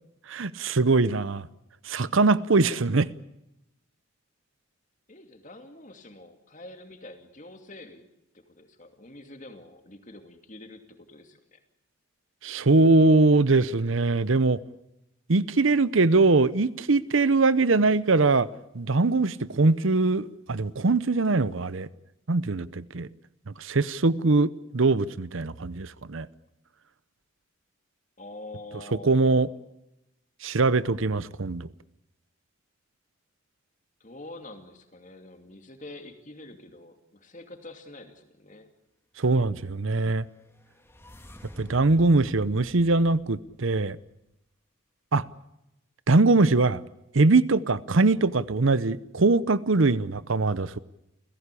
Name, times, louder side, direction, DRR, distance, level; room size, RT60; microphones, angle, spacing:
voice 1, 0.3-1.4 1.9-3.1 12.4-14.6 15.3-18.5 18.7-21.9 22.3-23.1 23.6-26.3 29.0-29.5 30.4-31.7 39.2-40.3 41.6-44.0 45.1-45.2 46.1-46.8 47.1-50.8, right 3 dB, 70° right, 0.8 m, -22 dB
voice 2, 5.1-8.0 8.3-11.6 28.2-29.5 34.0-38.7, left 2 dB, 35° left, 2.7 m, -46 dB
sound 1, 40.0-44.2, equal, 10° left, 2.8 m, -49 dB
29.5 x 16.0 x 8.4 m
head